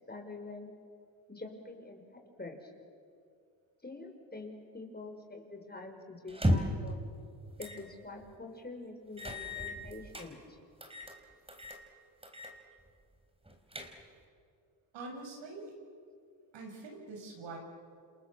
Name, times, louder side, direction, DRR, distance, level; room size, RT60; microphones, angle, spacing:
voice 1, 0.1-0.7 1.3-2.7 3.8-7.0 7.6-10.6, left 2 dB, 20° left, 4 dB, 5.9 m, -46 dB
sound 1, 6.3-6.9 7.6-7.8 8.2-8.3 9.2-10.3 10.8-11.2 11.5-11.8 12.2-12.6 12.9-13.0 13.5-14.2, equal, 10° right, 5.1 m, -34 dB
voice 2, 14.9-15.7 16.5-17.6, right 3 dB, 70° right, 1 dB, 7.6 m, -44 dB
29.5 x 27.0 x 7.3 m, 2.3 s
supercardioid pair, 65°, 46 cm